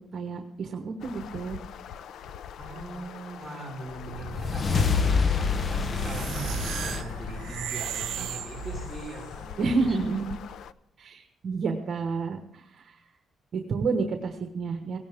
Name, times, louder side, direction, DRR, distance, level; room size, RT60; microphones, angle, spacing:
voice 1, 0.1-1.6 9.6-10.3 11.0-13.0 13.5-15.0, right 4 dB, 55° right, 5 dB, 1.3 m, -30 dB
sound 1, 1.0-10.7, left 8 dB, 75° left, 0.6 m, -42 dB
voice 2, 2.6-10.0, right 2 dB, 5° right, -5 dB, 4.6 m, -41 dB
sound 2, 4.0-8.5, left 5 dB, 40° left, 0.8 m, -28 dB
sound 3, 6.0-9.2, right 11 dB, 90° right, 0.5 m, -35 dB
18.0 x 17.0 x 3.6 m, 0.80 s
cardioid pair, 150°, 0 cm